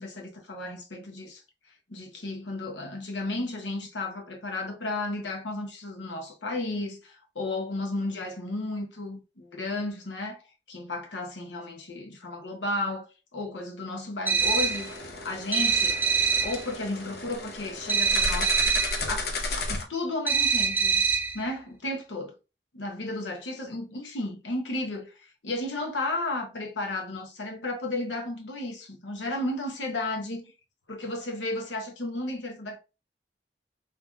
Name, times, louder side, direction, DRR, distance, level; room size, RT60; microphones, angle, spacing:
voice 1, 0.0-1.4 1.9-10.4 10.7-13.1 13.3-16.0 16.4-18.5 19.1-19.3 19.7-21.1 21.3-22.3 22.7-30.4 30.9-32.8, left 2 dB, 85° left, 1.0 m, -33 dB
sound 1, 14.2-14.9 15.5-16.6 17.9-19.0 20.3-21.4, right 5 dB, 10° right, 0.4 m, -24 dB
sound 2, 14.4-19.8, left 2 dB, 55° left, 0.7 m, -34 dB
3.7 x 2.9 x 2.3 m
head